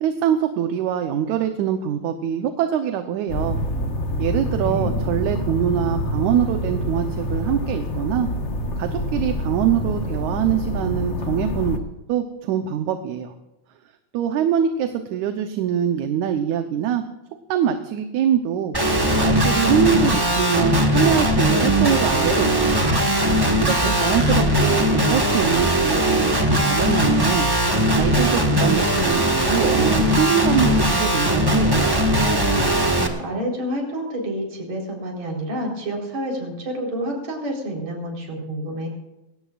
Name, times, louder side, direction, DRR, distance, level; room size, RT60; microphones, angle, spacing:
voice 1, 0.0-3.6 4.2-8.3 8.8-11.8 12.1-13.3 14.1-17.0 17.5-18.8 19.2-22.9 23.6-27.5 28.0-31.8, right 9 dB, 80° right, 7 dB, 2.3 m, -23 dB
sound 1, 3.3-11.8, equal, 50° left, 0.8 m, -26 dB
voice 2, 4.6-5.1 23.8-24.9 33.2-38.9, equal, 65° right, 0 dB, 5.4 m, -29 dB
Guitar, 18.7-33.1, equal, 20° right, 0.6 m, -19 dB
22.0 x 17.5 x 2.5 m, 0.97 s
omnidirectional pair, 3.4 m